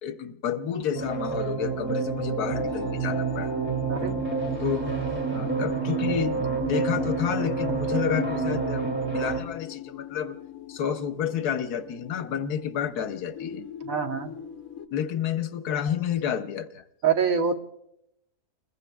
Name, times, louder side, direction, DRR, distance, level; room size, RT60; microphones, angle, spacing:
voice 1, 0.0-3.5 4.6-4.9 5.3-10.4 10.7-13.7 14.9-16.8, left 8 dB, 85° left, 9 dB, 1.4 m, -30 dB
sound 1, 0.9-9.4, right 5 dB, 5° right, 2.4 m, -28 dB
sound 2, 1.9-14.9, left 12 dB, 65° left, 1.3 m, -40 dB
voice 2, 13.8-14.4 17.0-17.6, right 6 dB, 65° right, 4 dB, 1.5 m, -25 dB
30.0 x 21.0 x 2.3 m, 0.82 s
omnidirectional pair, 1.6 m